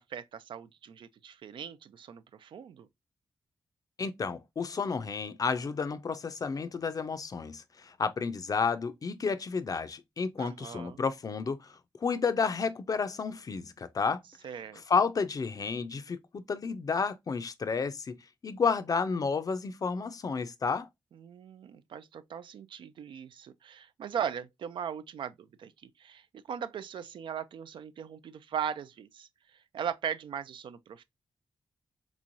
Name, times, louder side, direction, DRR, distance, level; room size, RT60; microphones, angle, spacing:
voice 1, 0.0-2.9 10.4-11.0 14.4-14.8 21.1-31.0, right 8 dB, 70° right, 0.3 m, -39 dB
voice 2, 4.0-14.2 14.9-18.2 18.4-20.9, left 5 dB, 45° left, 0.5 m, -31 dB
3.4 x 3.1 x 2.5 m
cardioid pair, 70°, 9 cm